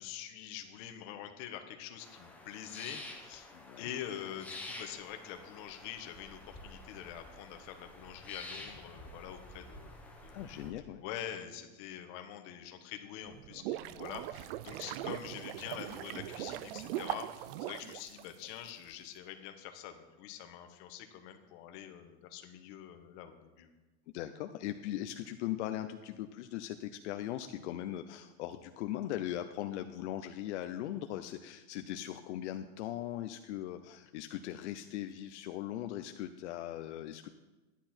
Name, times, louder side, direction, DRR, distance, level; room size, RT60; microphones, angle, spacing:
voice 1, 0.0-10.6 11.0-23.7, left 10 dB, 45° left, 6 dB, 1.3 m, -45 dB
sound 1, 2.0-10.7, left 2 dB, 5° left, 0.9 m, -49 dB
voice 2, 3.5-3.9 10.3-11.0 24.1-37.3, left 12 dB, 75° left, 8 dB, 0.7 m, -39 dB
sound 2, 13.3-18.7, right 13 dB, 55° right, 0.5 m, -40 dB
12.0 x 10.0 x 4.4 m, 1.2 s
supercardioid pair, 170°, 35 cm